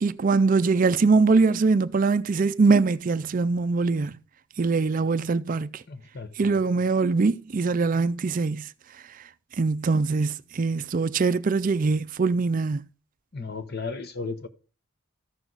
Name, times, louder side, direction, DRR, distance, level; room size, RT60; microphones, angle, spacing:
voice 1, 0.0-4.1 4.6-5.8 6.4-8.7 9.6-12.8, right 4 dB, 40° right, 0.4 m, -22 dB
voice 2, 5.9-6.6 13.3-14.5, left 4 dB, 50° left, 1.0 m, -35 dB
14.0 x 6.2 x 4.0 m
head